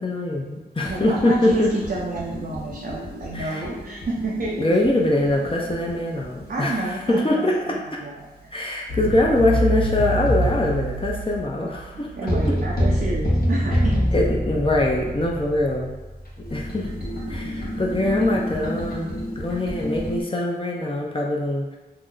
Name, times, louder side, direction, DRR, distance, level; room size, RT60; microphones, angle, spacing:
voice 1, 0.0-1.7 3.3-3.6 4.6-7.8 8.5-12.1 14.1-15.9 16.5-16.9 17.3-21.8, left 1 dB, 30° left, -2 dB, 0.7 m, -23 dB
sound 1, 0.8-7.0 8.9-20.2, equal, 65° left, 0.9 m, -27 dB
voice 2, 0.8-4.8 6.5-8.5 11.9-14.0, right 2 dB, 65° right, -4 dB, 0.5 m, -30 dB
2.9 x 2.1 x 3.7 m, 1.1 s
cardioid pair, 45°, 17 cm